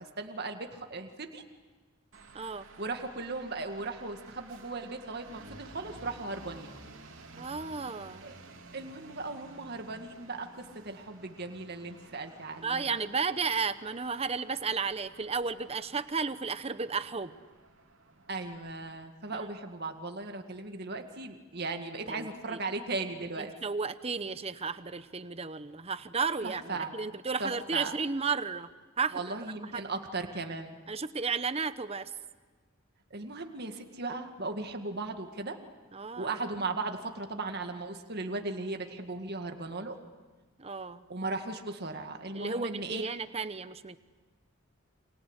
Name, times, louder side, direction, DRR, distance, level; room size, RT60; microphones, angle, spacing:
voice 1, 0.0-1.4 2.8-6.7 8.2-8.4 8.7-13.0 18.3-23.5 26.4-26.9 27.4-27.9 29.1-30.8 33.1-35.6 36.2-40.0 41.1-43.0, right 3 dB, 50° right, 5 dB, 2.0 m, -37 dB
sound 1, 2.1-19.1, right 2 dB, 70° right, 3.3 m, -53 dB
voice 2, 2.3-2.7 7.4-8.2 12.6-17.4 22.1-22.6 23.4-28.7 29.0-29.8 30.9-32.1 35.9-36.4 40.6-41.0 42.3-44.0, right 5 dB, 30° right, 12 dB, 0.9 m, -33 dB
29.5 x 25.0 x 8.2 m, 1.3 s
head